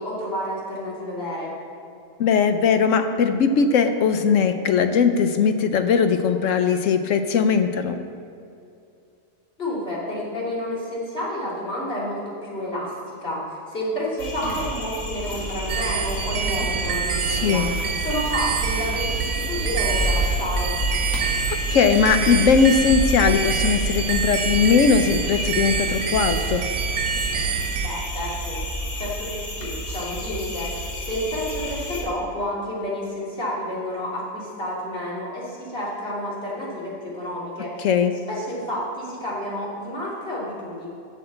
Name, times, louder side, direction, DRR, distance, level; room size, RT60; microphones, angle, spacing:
voice 1, 0.0-1.5 9.6-13.4 13.7-17.6 18.0-20.8 27.8-28.6 28.9-37.9 38.3-40.9, left 1 dB, 45° left, -7 dB, 3.0 m, -30 dB
voice 2, 2.2-8.0 17.3-17.7 21.5-26.6 37.8-38.1, left 6 dB, 70° left, 8 dB, 0.9 m, -19 dB
sound 1, 14.2-32.0, equal, 85° left, 2.3 m, -30 dB
sound 2, 15.7-27.9, right 6 dB, 80° right, 1.2 m, -26 dB
7.8 x 6.5 x 7.8 m, 2.5 s
omnidirectional pair, 1.5 m